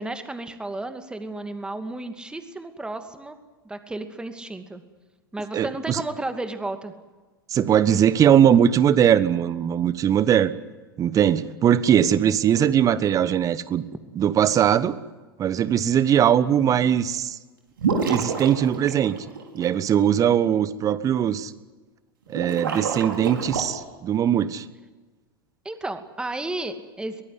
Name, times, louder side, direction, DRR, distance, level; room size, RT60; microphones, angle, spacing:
voice 1, 0.0-3.4 3.6-4.8 5.3-6.9 25.6-27.2, right 2 dB, 5° right, 8 dB, 2.4 m, -33 dB
voice 2, 5.5-6.0 7.5-10.5 11.0-13.8 14.1-15.0 15.4-17.4 18.1-19.2 19.5-21.5 22.3-24.6, right 9 dB, 30° right, 16 dB, 1.3 m, -20 dB
sound 1, 17.8-19.6 22.3-23.6, right 5 dB, 70° right, 4.9 m, -28 dB
23.0 x 20.5 x 9.7 m, 1.3 s
figure-of-eight pair, 85°, 12 cm